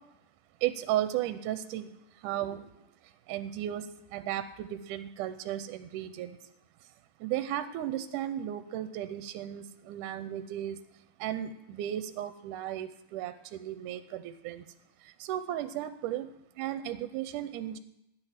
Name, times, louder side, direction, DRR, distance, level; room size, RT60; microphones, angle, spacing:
voice 1, 0.6-2.7 3.0-6.5 6.8-6.9 7.2-10.8 11.2-14.7 15.0-16.3 16.6-17.8, right 12 dB, 80° right, 11 dB, 2.1 m, -35 dB
12.5 x 9.8 x 5.8 m, 0.84 s
omnidirectional pair, 3.7 m